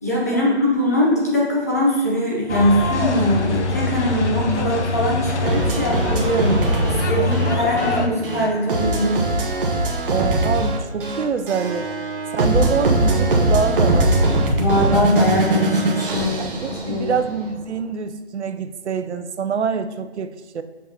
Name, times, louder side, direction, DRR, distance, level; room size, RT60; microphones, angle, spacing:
voice 1, 0.0-9.3 14.6-16.4 16.7-17.1, left 1 dB, 15° left, -5 dB, 0.6 m, -21 dB
sound 1, 2.5-8.1, left 2 dB, 90° left, 0.9 m, -24 dB
sound 2, 5.4-17.4, right 2 dB, 50° right, 1.1 m, -21 dB
voice 2, 10.1-11.9 12.3-14.1 16.4-20.6, right 6 dB, 80° right, 11 dB, 0.6 m, -25 dB
7.3 x 5.4 x 2.8 m, 1.2 s
hypercardioid pair, 165°, 33 cm